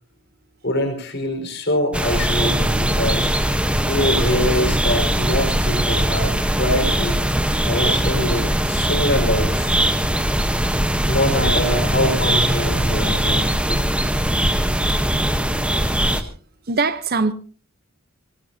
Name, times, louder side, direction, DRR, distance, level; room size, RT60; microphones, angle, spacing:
voice 1, 0.6-3.3 3.8-7.2 7.6-9.7 11.1-13.8, left 1 dB, 50° left, 4.7 m, -24 dB
sound 1, 1.9-16.2, right 1 dB, 5° right, 1.0 m, -20 dB
voice 2, 14.4-15.0 15.7-15.8 16.1-16.3 16.7-17.3, right 3 dB, 45° right, 0.9 m, -24 dB
25.0 x 18.5 x 2.8 m
head